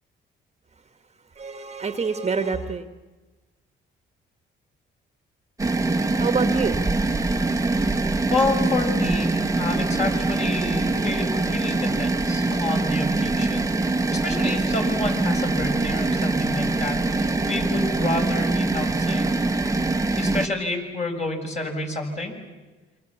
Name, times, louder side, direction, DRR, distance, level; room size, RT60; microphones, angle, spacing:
voice 1, 1.4-2.9 6.2-7.2 7.6-7.7, right 4 dB, 35° right, 7 dB, 1.6 m, -27 dB
sound 1, 5.6-20.5, right 2 dB, 15° right, 1.4 m, -23 dB
voice 2, 8.3-13.7 14.1-19.3 20.1-22.3, left 2 dB, 35° left, 2 dB, 6.3 m, -29 dB
27.5 x 25.0 x 7.2 m, 1.2 s
cardioid pair, 90°, 20 cm